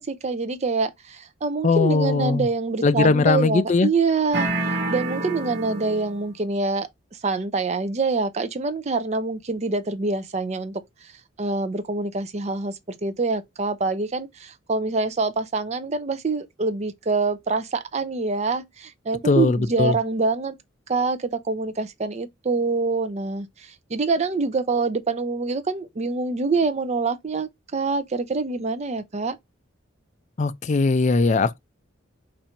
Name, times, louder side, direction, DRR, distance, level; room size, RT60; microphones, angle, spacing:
voice 1, 0.0-6.9 7.2-11.1 11.4-20.5 20.9-29.4, right 3 dB, 35° right, 0.5 m, -25 dB
voice 2, 1.6-2.5 2.8-3.9 19.2-20.0 30.4-31.6, left 3 dB, 40° left, 0.4 m, -20 dB
sound 1, 4.3-6.3, right 2 dB, 60° right, 1.1 m, -28 dB
4.3 x 2.6 x 4.4 m
head